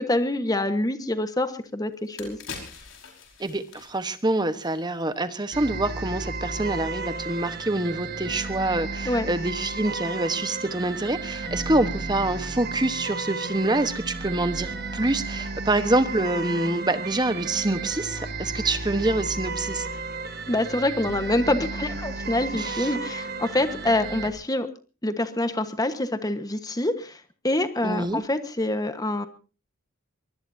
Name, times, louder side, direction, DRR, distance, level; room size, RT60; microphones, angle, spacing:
voice 1, 0.0-2.4 9.0-9.3 20.5-24.7 25.0-27.2 27.4-29.3, left 1 dB, 20° left, 9 dB, 1.3 m, -26 dB
sound 1, 1.5-1.6 1.9-5.2 5.5-5.7, left 5 dB, 65° left, 5.0 m, -43 dB
voice 2, 3.4-19.9 22.5-22.9 27.8-28.2, right 2 dB, 20° right, 11 dB, 1.2 m, -26 dB
sound 2, 5.5-24.3, right 3 dB, 50° right, 1.4 m, -33 dB
23.5 x 19.5 x 2.8 m, 0.36 s
head